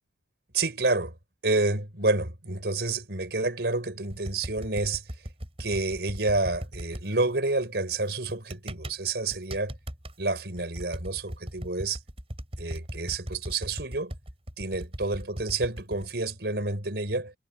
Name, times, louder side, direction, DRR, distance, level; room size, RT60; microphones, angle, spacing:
voice 1, 0.5-1.1 1.4-5.0 5.6-9.7 10.2-12.0 12.6-14.1 14.6-17.3, right 2 dB, 70° right, 5.1 m, -29 dB
sound 1, 4.1-7.0 8.3-9.0 9.3-10.1 10.6-16.0, equal, 35° right, 7.0 m, -38 dB
head